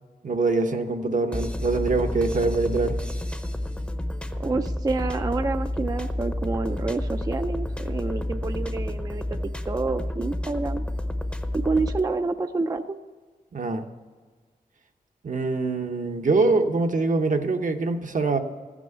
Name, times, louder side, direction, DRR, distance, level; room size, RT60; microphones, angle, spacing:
voice 1, 0.2-3.0 13.5-13.8 15.2-18.4, right 3 dB, 60° right, 5 dB, 0.9 m, -24 dB
sound 1, 1.3-12.0, left 1 dB, 10° left, 0.7 m, -30 dB
voice 2, 4.3-9.4 9.7-10.8 11.5-13.0, right 3 dB, 25° right, 7 dB, 0.4 m, -28 dB
15.0 x 6.1 x 8.1 m, 1.4 s
wide cardioid pair, 120°, 15 cm